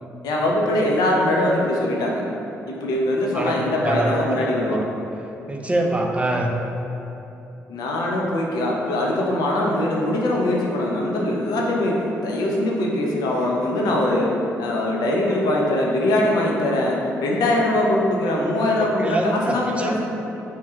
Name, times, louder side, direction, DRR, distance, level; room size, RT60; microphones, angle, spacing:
voice 1, 0.2-2.2 2.7-4.8 7.7-14.3 14.6-20.1, left 1 dB, 70° left, -2 dB, 0.5 m, -22 dB
voice 2, 3.3-4.8 5.5-6.5 18.8-20.1, right 1 dB, 15° right, 2 dB, 0.4 m, -25 dB
3.0 x 2.1 x 3.5 m, 2.9 s
hypercardioid pair, 45°, 7 cm